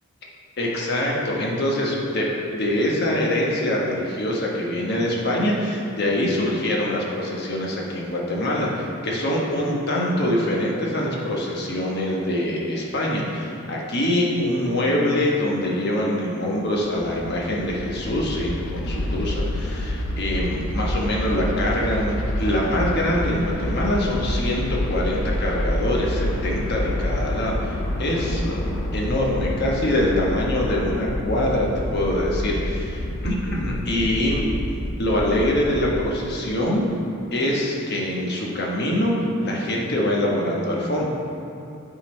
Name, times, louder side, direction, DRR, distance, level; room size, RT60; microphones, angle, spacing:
voice 1, 0.6-28.6 28.9-34.4 35.0-36.8 37.3-39.1 39.4-41.1, left 1 dB, 55° left, -3 dB, 1.1 m, -24 dB
sound 1, 16.6-36.0, left 1 dB, 85° left, 0.7 m, -28 dB
8.9 x 4.0 x 4.3 m, 2.8 s
head